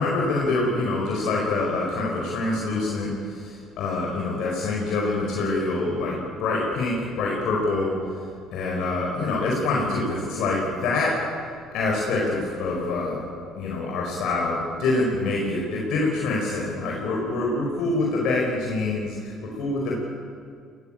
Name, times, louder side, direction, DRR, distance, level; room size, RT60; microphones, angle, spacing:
voice 1, 0.0-7.9 8.5-11.1 11.7-13.2 13.6-20.0, left 2 dB, 65° left, -2 dB, 4.8 m, -25 dB
21.5 x 18.0 x 8.9 m, 2.3 s
supercardioid pair, 70°, 0 cm